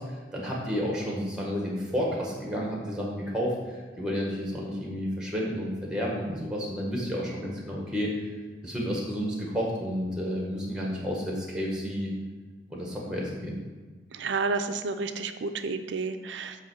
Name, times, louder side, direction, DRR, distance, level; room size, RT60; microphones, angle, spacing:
voice 1, 0.0-8.1 8.6-12.1 12.7-13.6, equal, 5° right, -2 dB, 1.5 m, -31 dB
voice 2, 14.1-16.6, right 4 dB, 85° right, 8 dB, 0.5 m, -30 dB
8.4 x 3.2 x 6.4 m, 1.4 s
head